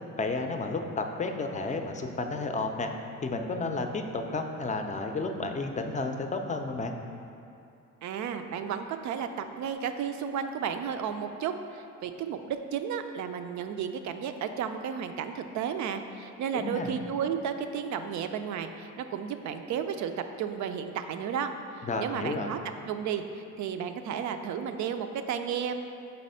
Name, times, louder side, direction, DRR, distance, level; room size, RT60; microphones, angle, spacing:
voice 1, 0.1-2.9 3.2-7.0 16.5-16.9 21.8-22.5, left 3 dB, 25° left, 4 dB, 0.5 m, -32 dB
voice 2, 8.0-20.1 20.4-21.5 22.0-22.6 22.9-25.7, right 7 dB, 70° right, 8 dB, 0.4 m, -33 dB
4.2 x 4.2 x 5.4 m, 2.6 s
cardioid pair, 90°, 30 cm